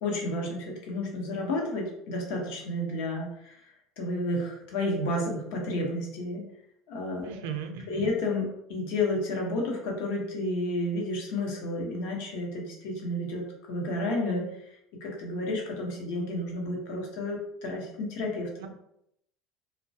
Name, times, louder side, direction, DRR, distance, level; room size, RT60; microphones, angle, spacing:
voice 1, 0.0-3.7 4.0-6.5 6.9-7.3 7.9-18.5, left 1 dB, 60° left, -1 dB, 0.8 m, -31 dB
voice 2, 7.2-8.1 18.6-18.7, right 7 dB, 85° right, 5 dB, 0.4 m, -37 dB
3.0 x 2.2 x 2.7 m, 0.78 s
cardioid pair, 180°, 0 cm